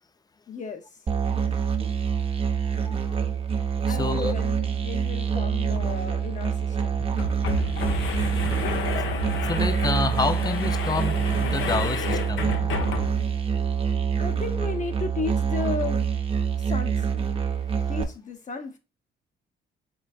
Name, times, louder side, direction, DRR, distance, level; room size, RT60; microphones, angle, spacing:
voice 1, 0.5-0.8 3.9-7.0 14.2-16.0 16.6-17.0 17.9-18.8, left 4 dB, 40° left, 0.8 m, -34 dB
Musical instrument, 1.1-18.0, right 7 dB, 30° right, 0.6 m, -26 dB
voice 2, 2.8-3.2 3.9-4.3 9.4-12.5 17.7-17.8, left 3 dB, 20° left, 0.4 m, -28 dB
sound 1, 5.7-5.8 6.1-6.2 6.9-13.4, left 7 dB, 75° left, 0.7 m, -31 dB
3.9 x 3.3 x 2.3 m
cardioid pair, 90°, 20 cm